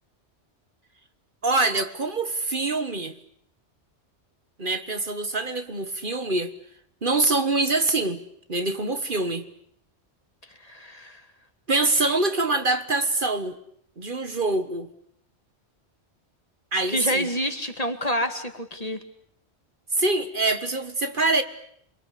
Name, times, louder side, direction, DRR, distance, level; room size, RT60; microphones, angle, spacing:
voice 1, 1.4-3.2 4.6-6.5 7.0-8.2 8.5-9.5 11.7-13.6 14.0-14.9 16.7-17.3 20.0-21.4, right 2 dB, 50° right, 9 dB, 1.6 m, -24 dB
voice 2, 10.6-11.2 16.9-19.0, equal, 35° left, 7 dB, 2.4 m, -28 dB
27.5 x 23.5 x 8.4 m, 0.69 s
omnidirectional pair, 1.2 m